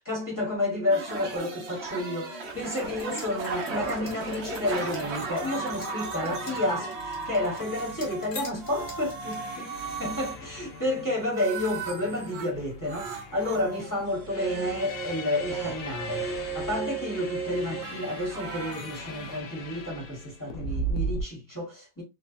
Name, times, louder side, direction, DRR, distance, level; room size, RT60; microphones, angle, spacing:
voice 1, 0.0-22.0, left 1 dB, 15° left, 0.9 m, -30 dB
sound 1, 0.9-8.3 8.6-12.5 12.8-19.4, right 4 dB, 70° right, 0.6 m, -36 dB
sound 2, 2.7-9.6, left 4 dB, 50° left, 1.1 m, -45 dB
sound 3, 4.2-21.2, right 1 dB, 80° left, 0.7 m, -40 dB
3.1 x 2.1 x 2.4 m
omnidirectional pair, 1.8 m